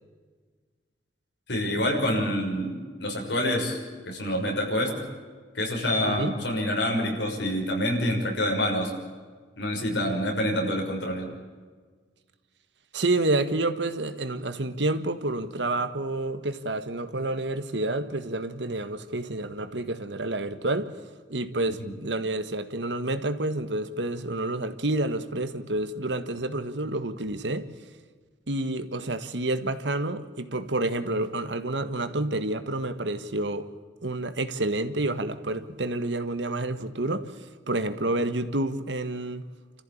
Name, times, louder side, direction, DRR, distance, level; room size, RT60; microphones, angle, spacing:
voice 1, 1.5-3.8 4.0-5.0 5.5-8.9 9.6-11.3 21.8-21.9, left 1 dB, 80° left, 6.1 m, -27 dB
voice 2, 6.0-6.3 12.9-20.9 21.3-27.7 28.5-33.7 34.0-37.3 37.7-39.4, right 2 dB, 85° right, 1.6 m, -29 dB
29.0 x 14.5 x 8.7 m
head